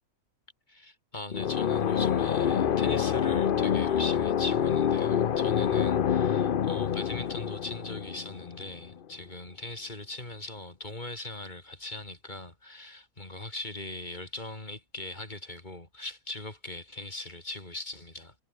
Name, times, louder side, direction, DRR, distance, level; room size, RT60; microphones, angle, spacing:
voice 1, 0.7-18.4, left 2 dB, 30° left, 3.5 m, -40 dB
sound 1, 1.3-9.0, left 8 dB, 50° left, 0.7 m, -27 dB
omnidirectional pair, 1.6 m